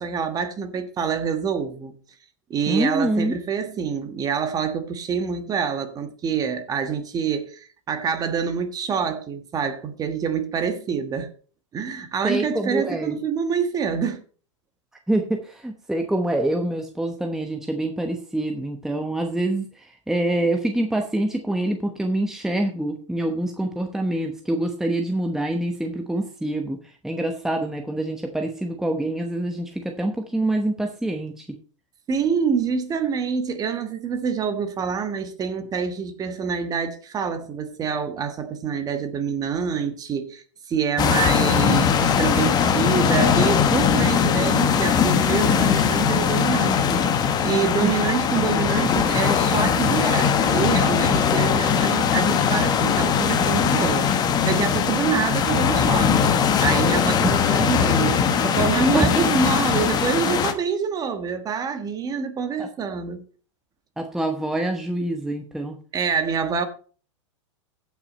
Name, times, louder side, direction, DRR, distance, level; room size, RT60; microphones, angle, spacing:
voice 1, 0.0-1.9 2.5-11.3 11.7-14.2 32.1-63.2 65.9-66.6, right 6 dB, 25° right, 1.4 m, -26 dB
voice 2, 2.7-3.4 12.2-13.2 15.1-31.6 47.8-47.9 57.2-57.3 58.9-59.1 62.6-62.7 64.0-65.8, right 1 dB, 5° right, 1.0 m, -25 dB
sound 1, 41.0-60.5, left 7 dB, 25° left, 1.2 m, -20 dB
15.5 x 6.1 x 4.2 m
hypercardioid pair, 125°, 16 cm